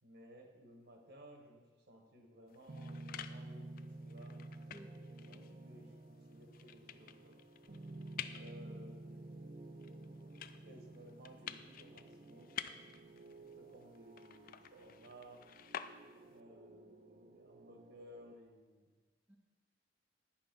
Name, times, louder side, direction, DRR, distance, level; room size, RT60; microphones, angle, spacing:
voice 1, 0.0-4.4 5.3-7.4 8.4-9.2 10.7-12.6 13.3-15.4 16.2-18.9, equal, 60° right, 3 dB, 1.4 m, -58 dB
sound 1, 2.5-16.4, left 9 dB, 50° left, 0.3 m, -51 dB
sound 2, 2.7-18.3, right 2 dB, 45° right, 0.6 m, -52 dB
voice 2, 4.7-6.1 19.3-19.4, equal, 10° right, 0 dB, 0.7 m, -60 dB
10.0 x 5.5 x 5.3 m, 1.3 s
head